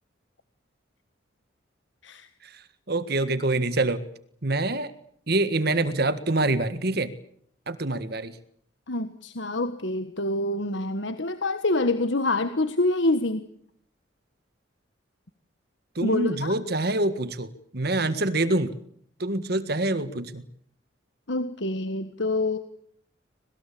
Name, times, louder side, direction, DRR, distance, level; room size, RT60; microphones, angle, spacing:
voice 1, 2.9-4.0 4.4-4.9 5.3-7.1 7.7-8.4 15.9-18.8 19.2-20.4, right 2 dB, 55° right, 12 dB, 1.7 m, -25 dB
voice 2, 8.9-13.4 16.0-16.5 21.3-22.6, left 2 dB, 70° left, 10 dB, 1.5 m, -26 dB
26.5 x 20.0 x 8.5 m, 0.65 s
head